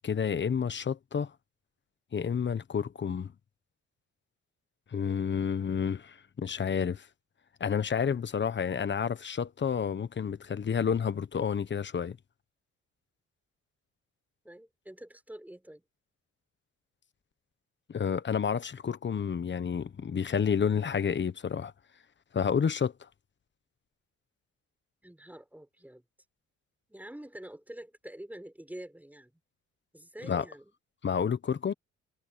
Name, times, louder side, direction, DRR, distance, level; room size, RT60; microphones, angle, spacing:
voice 1, 0.0-1.3 2.1-3.3 4.9-7.1 7.6-12.2 17.9-21.7 22.3-23.1 30.2-30.4 31.0-31.7, left 7 dB, 40° left, 1.2 m, -30 dB
voice 2, 14.4-15.8 25.0-26.0 26.9-29.3 29.9-30.7, right 1 dB, 5° right, 5.6 m, -46 dB
cardioid pair, 90°, 30 cm